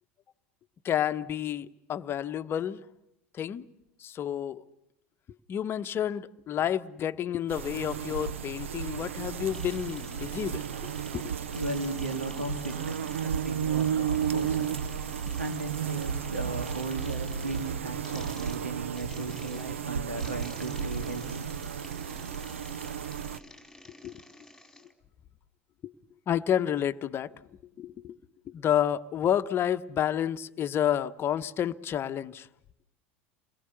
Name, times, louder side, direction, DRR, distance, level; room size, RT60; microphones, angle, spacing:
voice 1, 0.8-2.8 3.3-3.6 4.0-4.6 5.5-11.2 24.0-24.1 25.8-25.9 26.3-27.3 27.8-28.2 28.5-32.5, left 10 dB, 35° left, 1.0 m, -30 dB
sound 1, 7.5-23.4, right 8 dB, 75° right, 0.9 m, -33 dB
sound 2, 9.5-24.9, left 1 dB, ahead, 4.0 m, -50 dB
voice 2, 11.5-21.5, right 2 dB, 90° right, 2.9 m, -36 dB
29.0 x 22.5 x 6.9 m
figure-of-eight pair, 80°, 7 cm